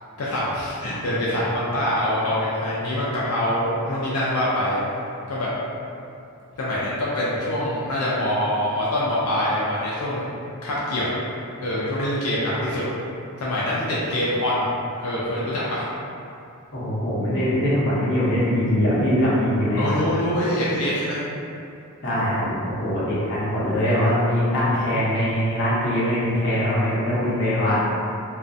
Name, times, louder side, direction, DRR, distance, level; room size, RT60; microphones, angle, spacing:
voice 1, 0.2-4.8 5.3-5.5 6.6-10.3 10.6-11.1 11.6-12.8 13.4-14.7 15.0-15.8 19.8-21.2, left 1 dB, 80° left, -8 dB, 0.4 m, -24 dB
voice 2, 16.7-19.8 22.0-27.8, equal, 55° left, -10 dB, 0.8 m, -22 dB
2.4 x 2.1 x 2.5 m, 2.6 s
head